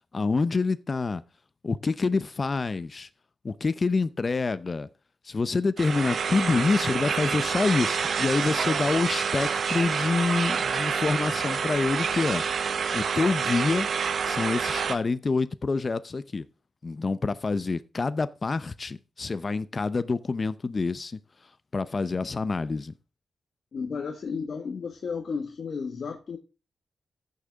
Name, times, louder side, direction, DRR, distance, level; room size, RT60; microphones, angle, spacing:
voice 1, 0.1-1.2 1.6-3.1 3.4-4.9 5.2-12.4 12.9-13.9 14.2-16.4 16.8-21.2 21.7-22.9, left 4 dB, 35° left, 0.7 m, -27 dB
sound 1, 5.8-15.0, right 6 dB, 65° right, 1.1 m, -28 dB
voice 2, 23.7-26.4, left 5 dB, 60° left, 1.6 m, -33 dB
14.5 x 6.8 x 3.6 m
cardioid pair, 90°, 0 cm